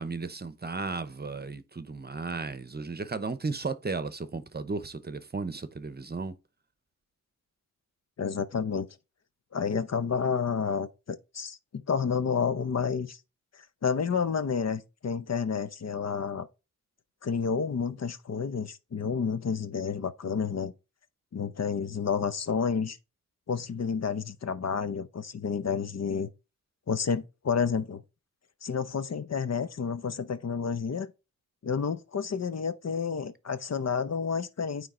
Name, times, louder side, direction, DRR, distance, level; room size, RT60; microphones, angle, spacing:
voice 1, 0.0-6.3, right 4 dB, 30° right, 0.8 m, -35 dB
voice 2, 8.2-8.9 9.5-13.2 13.8-16.5 17.2-20.7 21.3-23.0 23.5-26.3 26.9-28.0 28.6-31.1 31.6-34.9, left 6 dB, 55° left, 0.7 m, -30 dB
9.1 x 3.3 x 3.7 m
cardioid pair, 55°, 32 cm